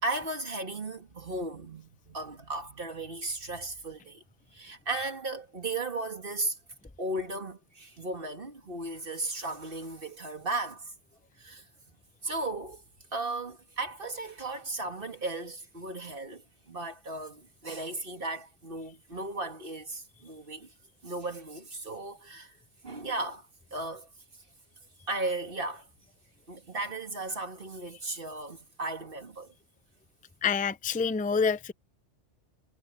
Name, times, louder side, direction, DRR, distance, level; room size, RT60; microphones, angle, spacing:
voice 1, 0.0-4.2 4.5-6.6 7.0-10.9 11.4-11.7 12.2-12.8 13.1-20.7 21.0-22.6 22.8-24.1 25.1-25.9 26.5-29.5, right 2 dB, 50° right, 2.7 m, -36 dB
voice 2, 30.4-31.7, left 5 dB, 10° left, 0.4 m, -27 dB
omnidirectional pair, 1.2 m